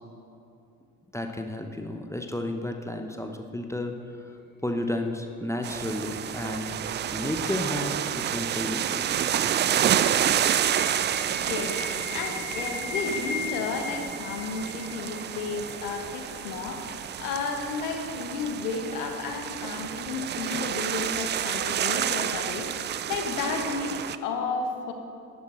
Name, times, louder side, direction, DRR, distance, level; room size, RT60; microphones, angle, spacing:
voice 1, 1.1-3.9 4.6-6.7 7.1-9.1, left 1 dB, 5° left, 4 dB, 0.9 m, -32 dB
sound 1, 5.6-24.2, right 10 dB, 25° right, 0.3 m, -29 dB
sound 2, 8.2-16.3, left 4 dB, 20° left, 1.6 m, -39 dB
voice 2, 10.9-24.9, left 4 dB, 75° left, 4 dB, 1.3 m, -33 dB
10.5 x 10.5 x 4.4 m, 2.7 s
figure-of-eight pair, 50°, 45 cm